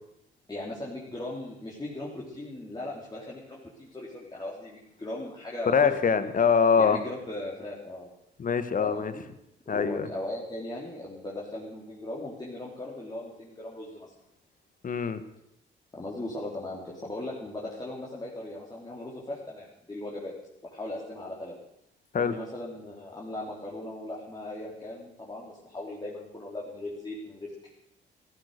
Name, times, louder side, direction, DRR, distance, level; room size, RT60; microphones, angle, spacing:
voice 1, 0.5-5.9 6.2-6.3 6.8-8.1 8.8-9.1 9.7-14.1 15.9-20.3 20.7-21.6 22.1-27.7, left 1 dB, 20° left, -5 dB, 3.6 m, -38 dB
voice 2, 5.7-7.0 8.4-9.1 9.7-10.1 14.8-15.2 22.1-22.3, left 6 dB, 45° left, 12 dB, 1.5 m, -23 dB
14.5 x 14.0 x 6.7 m, 0.77 s
cardioid pair, 90°, 20 cm